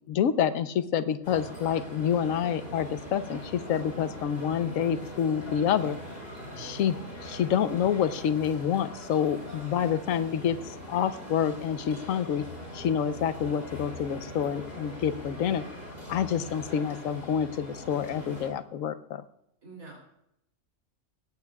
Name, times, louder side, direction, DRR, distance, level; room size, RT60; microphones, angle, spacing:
voice 1, 0.1-6.0 6.6-6.9 7.2-12.4 12.7-15.6 16.1-19.2, left 8 dB, 75° left, 11 dB, 1.2 m, -28 dB
sound 1, 1.2-18.5, equal, 45° left, 4.4 m, -42 dB
voice 2, 16.3-16.7 19.6-20.0, right 3 dB, 85° right, -3 dB, 3.4 m, -47 dB
18.5 x 16.5 x 2.4 m, 0.80 s
omnidirectional pair, 1.4 m